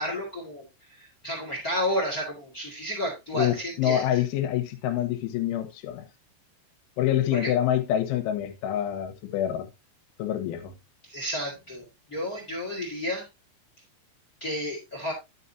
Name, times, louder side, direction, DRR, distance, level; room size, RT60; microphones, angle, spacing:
voice 1, 0.0-4.2 7.3-7.5 11.1-13.2 14.4-15.1, equal, 50° left, 1.0 m, -32 dB
voice 2, 3.3-6.1 7.0-9.7 10.2-10.7, left 11 dB, 85° left, 3.6 m, -26 dB
11.0 x 6.4 x 2.7 m
omnidirectional pair, 5.4 m